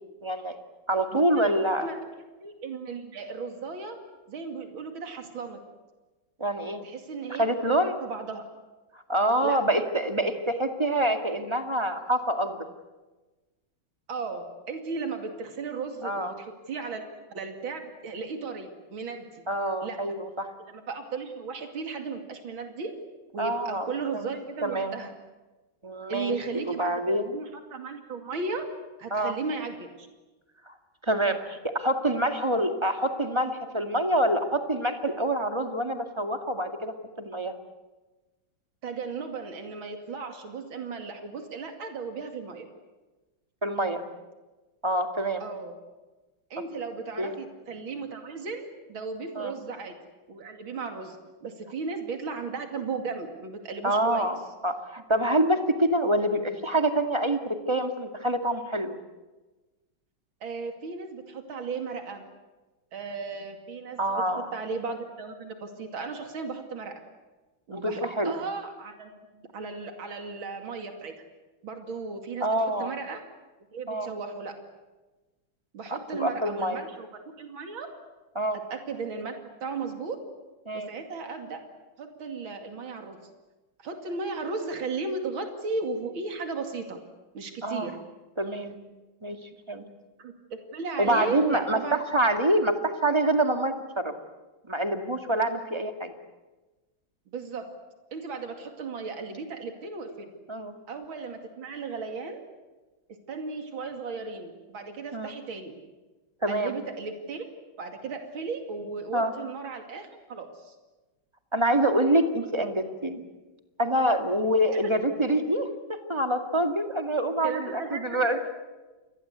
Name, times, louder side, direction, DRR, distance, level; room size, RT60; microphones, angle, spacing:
voice 1, 0.2-0.6 0.9-1.9 6.4-6.8 7.3-8.0 9.1-12.6 16.0-16.3 19.5-20.5 23.4-23.9 24.1-24.3 24.6-24.9 25.8-26.3 26.7-27.3 29.1-29.4 30.7-30.8 31.0-37.5 43.6-44.0 44.8-45.4 47.2-47.4 49.4-49.5 53.8-59.0 64.0-64.5 67.7-68.3 72.4-72.9 73.9-74.1 76.1-76.8 78.4-78.6 80.7-80.9 87.6-87.9 88.4-88.8 89.2-89.4 89.7-89.9 91.0-91.8 92.1-94.1 94.7-96.1 100.5-100.7 105.1-105.3 106.4-106.8 109.1-109.3 111.5-113.2 113.8-118.4, right 1 dB, 15° right, 6 dB, 2.1 m, -26 dB
voice 2, 1.1-1.5 1.8-2.0 2.4-4.0 4.3-5.6 6.8-8.4 9.4-9.6 14.1-19.3 19.8-20.0 20.7-22.9 23.3-25.1 26.1-28.7 29.0-30.1 38.8-42.7 45.4-45.7 46.5-49.9 50.3-54.3 60.4-62.2 62.9-64.0 64.3-66.9 67.7-71.1 71.6-72.5 72.8-73.2 73.7-74.6 75.7-77.1 77.4-77.9 78.7-80.2 80.7-81.6 82.0-83.2 83.8-87.0 87.3-88.0 90.2-90.3 90.7-92.0 97.3-97.7 98.1-100.3 100.9-102.4 103.3-105.8 106.5-107.4 107.8-110.7 114.7-114.8 117.4-118.4, right 4 dB, 80° right, 5 dB, 3.3 m, -35 dB
29.0 x 22.0 x 8.2 m, 1.2 s
omnidirectional pair, 2.2 m